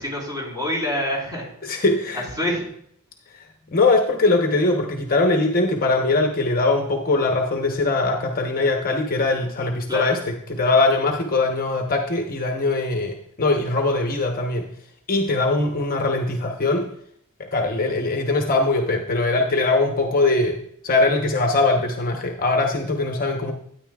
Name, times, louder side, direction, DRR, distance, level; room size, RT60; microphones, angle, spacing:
voice 1, 0.0-1.8 2.1-2.6 9.9-10.2, left 1 dB, 15° right, -4 dB, 3.8 m, -27 dB
voice 2, 1.6-2.2 3.7-14.7 15.1-16.9 17.4-20.6 20.8-23.5, left 3 dB, 40° left, 3 dB, 0.9 m, -21 dB
12.5 x 9.5 x 2.3 m, 0.68 s
head